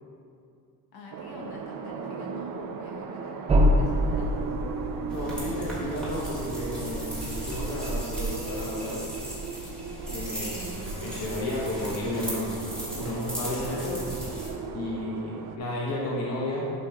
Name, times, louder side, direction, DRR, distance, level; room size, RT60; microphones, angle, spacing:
voice 1, 0.9-4.5, left 1 dB, 70° left, -2 dB, 1.6 m, -46 dB
sound 1, 1.1-15.6, right 5 dB, 55° right, 0.7 m, -38 dB
sound 2, 3.5-8.2, equal, 20° right, 0.3 m, -27 dB
voice 2, 5.1-9.1 10.0-12.6 12.9-14.0 14.7-16.7, left 1 dB, 40° left, -4 dB, 1.2 m, -33 dB
sound 3, 5.1-14.5, right 1 dB, ahead, 1.9 m, -36 dB
11.0 x 5.3 x 3.6 m, 2.5 s
cardioid pair, 165°, 39 cm